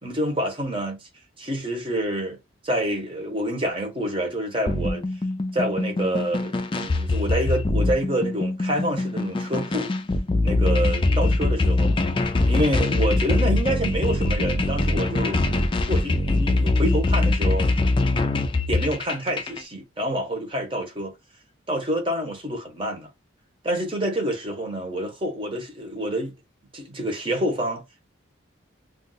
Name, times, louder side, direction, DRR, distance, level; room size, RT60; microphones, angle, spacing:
voice 1, 0.0-1.1 1.4-2.4 2.6-5.0 5.5-9.9 10.4-11.9 12.4-15.4 15.9-17.7 18.7-21.1 21.7-23.1 23.6-26.3 26.7-28.1, right 1 dB, 25° right, 0.9 m, -27 dB
sound 1, 4.7-19.6, left 2 dB, 25° left, 0.3 m, -23 dB
2.4 x 2.3 x 3.9 m
head